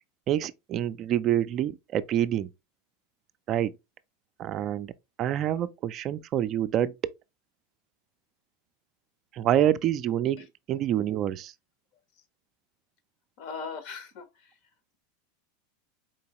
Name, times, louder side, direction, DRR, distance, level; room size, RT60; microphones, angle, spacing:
voice 1, 0.3-2.5 3.5-3.7 4.4-4.9 5.2-7.1 9.3-11.5, right 11 dB, 40° right, 0.3 m, -27 dB
voice 2, 13.4-14.5, left 5 dB, 60° left, 1.1 m, -39 dB
4.4 x 3.0 x 2.8 m
hypercardioid pair, 110°, 0 cm